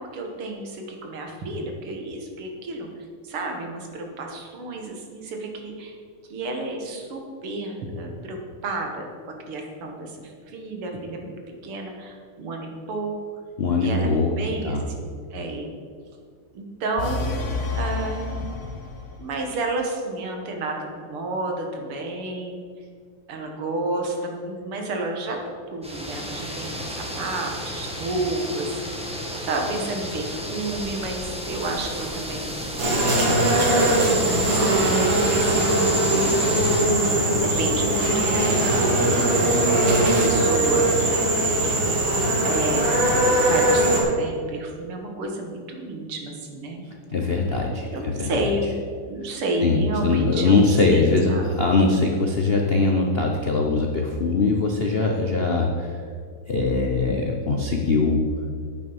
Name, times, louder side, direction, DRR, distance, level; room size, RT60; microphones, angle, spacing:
voice 1, 0.0-2.9 3.2-6.0 6.3-8.4 8.6-9.1 9.5-11.3 11.6-13.1 13.8-14.1 14.4-15.7 16.5-17.4 17.7-18.5 19.2-22.6 23.3-25.4 25.7-29.0 29.5-34.6 35.3-36.4 37.0-39.3 39.8-40.9 42.4-43.0 43.4-46.8 47.9-48.7 49.1-51.5, right 2 dB, 85° right, 2 dB, 2.3 m, -31 dB
voice 2, 13.6-14.3 14.6-14.9 47.1-48.3 49.6-55.9 56.5-58.2, left 3 dB, 75° left, 1 dB, 0.5 m, -21 dB
sound 1, 17.0-19.2, left 3 dB, 40° left, 1.3 m, -29 dB
sound 2, 25.8-36.8, equal, 5° right, 0.8 m, -32 dB
sound 3, 32.8-44.0, right 1 dB, 65° right, 3.0 m, -20 dB
8.8 x 8.6 x 5.5 m, 2.1 s
omnidirectional pair, 2.4 m